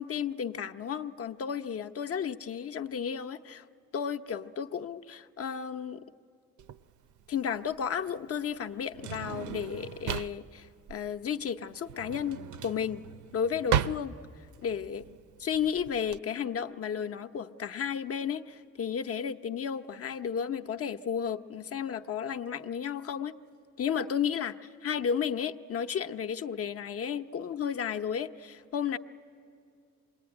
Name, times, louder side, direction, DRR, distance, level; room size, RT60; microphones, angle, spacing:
voice 1, 0.0-3.6 3.9-6.0 7.3-13.0 13.3-14.2 14.6-15.1 15.4-23.3 23.8-29.0, left 7 dB, 50° left, 8 dB, 0.9 m, -33 dB
Drawer open or close, 6.6-16.2, right 9 dB, 75° right, 0.6 m, -36 dB
26.5 x 21.5 x 9.7 m, 2.4 s
cardioid pair, 90°, 30 cm